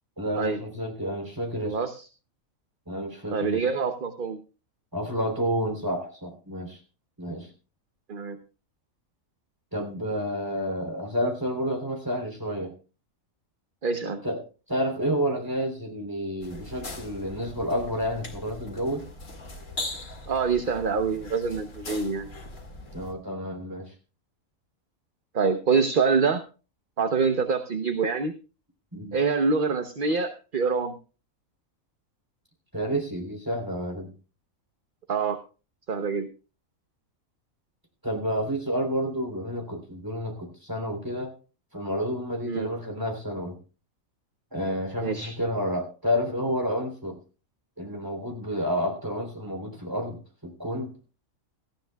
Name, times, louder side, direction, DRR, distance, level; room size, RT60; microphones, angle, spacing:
voice 1, 0.2-1.8 2.9-3.6 4.9-6.8 7.2-7.5 9.7-12.7 14.2-14.4 14.7-19.1 22.9-23.9 28.9-29.2 32.7-34.1 38.0-41.3 41.7-43.6 44.5-47.2 47.8-50.9, equal, 15° right, 3 dB, 3.5 m, -30 dB
voice 2, 1.6-2.1 3.3-4.4 8.1-8.4 13.8-14.2 20.3-22.3 25.3-26.4 27.0-28.3 29.1-31.0 35.1-35.4 35.9-36.3 42.5-42.7 45.0-45.3, right 5 dB, 45° right, 7 dB, 1.0 m, -25 dB
sound 1, 16.4-23.1, left 2 dB, 65° left, 2.6 m, -40 dB
17.5 x 14.5 x 2.3 m, 0.35 s
omnidirectional pair, 1.4 m